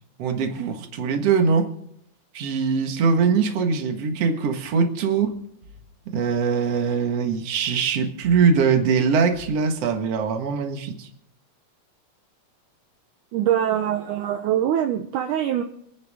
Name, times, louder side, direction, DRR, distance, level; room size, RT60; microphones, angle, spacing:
voice 1, 0.2-1.7 2.3-5.4 6.1-11.1, right 5 dB, 50° right, 2.3 m, -22 dB
voice 2, 13.3-15.6, right 10 dB, 75° right, 2.2 m, -23 dB
27.0 x 10.5 x 3.7 m
omnidirectional pair, 4.1 m